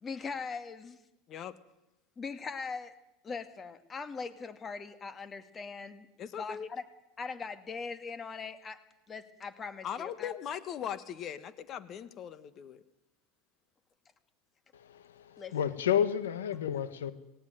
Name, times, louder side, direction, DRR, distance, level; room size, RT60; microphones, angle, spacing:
voice 1, 0.0-1.0 2.2-2.9 3.2-6.1 6.4-6.8 7.2-8.8 9.1-10.4 15.4-15.6, left 5 dB, 25° left, 2.1 m, -40 dB
voice 2, 6.2-6.7 9.8-12.8, left 9 dB, 40° left, 1.6 m, -39 dB
voice 3, 14.7-17.1, left 9 dB, 80° left, 1.5 m, -31 dB
18.5 x 18.0 x 9.2 m
hypercardioid pair, 90°, 0 cm